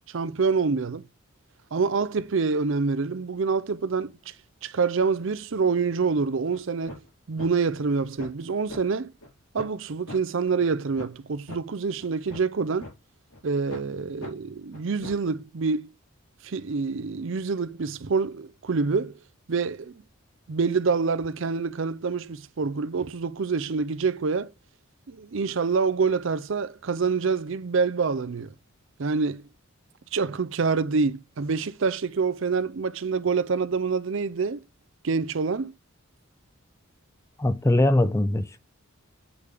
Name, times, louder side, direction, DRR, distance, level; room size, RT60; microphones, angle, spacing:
voice 1, 0.1-1.0 1.7-4.3 4.6-7.0 7.3-9.1 9.5-12.9 13.4-15.9 16.4-19.2 19.5-20.0 20.5-24.5 25.1-28.5 29.0-29.4 30.1-34.6 35.0-35.7, right 4 dB, 60° right, 0.5 m, -26 dB
sound 1, 6.5-6.6 6.9-7.1 7.4-7.5 7.9-8.4 8.7-8.8 9.2-9.3 9.6-9.8 10.1-10.2 10.6-10.7 11.0-11.1 11.5-11.6 12.0-12.9 13.3-13.4 13.7-13.9 14.2-14.3 14.7-15.3, left 1 dB, 80° left, 3.7 m, -40 dB
voice 2, 37.4-38.7, left 1 dB, 15° left, 0.3 m, -22 dB
8.3 x 4.9 x 3.5 m
head